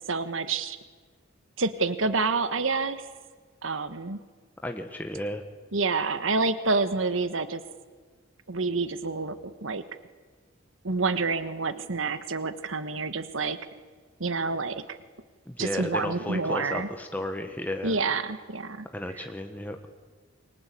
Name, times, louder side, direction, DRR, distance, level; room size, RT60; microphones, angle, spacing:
voice 1, 0.1-0.8 1.6-3.0 3.6-4.2 5.7-7.6 8.5-9.8 10.8-13.6 14.2-15.0 15.6-16.9 17.8-18.8, right 3 dB, 75° right, 11 dB, 1.4 m, -28 dB
voice 2, 4.6-5.4 15.5-18.0 18.9-19.8, left 1 dB, 10° left, 5 dB, 1.4 m, -33 dB
28.5 x 24.5 x 8.5 m, 1.5 s
head